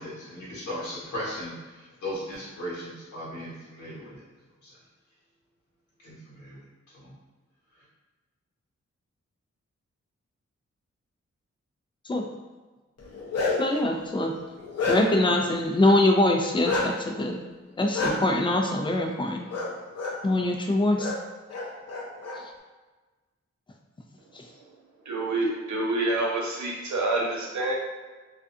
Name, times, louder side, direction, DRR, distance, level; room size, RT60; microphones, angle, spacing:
voice 1, 0.0-4.1 4.6-4.7 6.0-6.6 6.9-7.1, equal, 80° left, -8 dB, 1.1 m, -37 dB
Bark, 13.0-13.8 14.3-15.3 16.6-16.9 17.9-18.1 19.5-19.7 19.9-20.1 21.0-21.1 21.5-22.4, left 3 dB, 60° left, 0.6 m, -28 dB
voice 2, 13.6-14.3 14.9-17.4 17.8-19.5 20.2-21.1, left 1 dB, 20° left, 2 dB, 0.3 m, -23 dB
voice 3, 25.1-27.8, right 2 dB, 80° right, -2 dB, 0.7 m, -27 dB
2.4 x 2.3 x 2.6 m, 1.3 s
wide cardioid pair, 80°, 29 cm